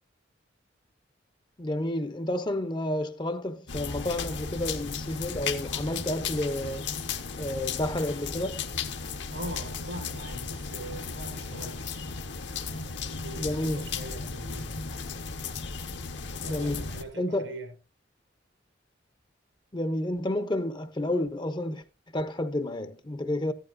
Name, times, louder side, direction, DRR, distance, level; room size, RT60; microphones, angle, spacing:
voice 1, 1.6-6.9 7.4-8.7 13.4-13.8 16.4-16.9 17.2-17.5 19.7-21.8 22.1-23.5, left 1 dB, 25° left, 0.7 m, -30 dB
sound 1, 3.7-17.0, left 5 dB, 70° left, 1.1 m, -35 dB
voice 2, 9.3-12.0 12.7-14.8 16.4-17.7, right 1 dB, 85° right, 5.9 m, -42 dB
14.5 x 12.0 x 2.5 m
head